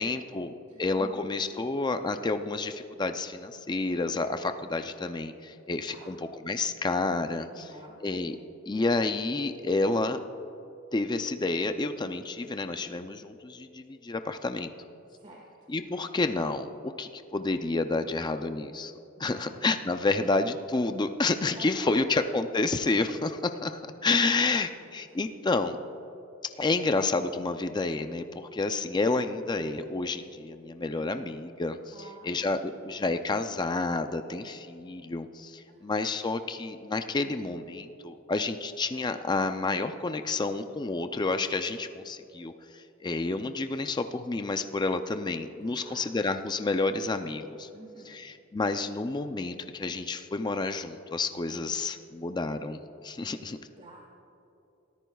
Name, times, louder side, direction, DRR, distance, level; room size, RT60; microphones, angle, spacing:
voice 1, 0.0-0.5 0.8-6.2 6.5-7.7 8.0-8.4 8.7-10.2 10.9-14.7 15.7-18.9 19.2-25.8 26.6-31.8 32.2-47.7 48.1-53.6, left 3 dB, 20° left, 8 dB, 0.4 m, -29 dB
voice 2, 0.7-1.3 2.0-2.1 5.8-6.2 7.5-8.0 15.1-15.5 19.2-19.6 21.6-22.3 24.0-25.6 30.8-31.1 31.9-33.1 35.7-36.0 45.6-46.0 47.7-48.2 51.3-52.0 53.2-53.5 53.8-54.0, right 2 dB, 35° right, -2 dB, 1.4 m, -51 dB
23.0 x 13.5 x 2.3 m, 2.9 s
head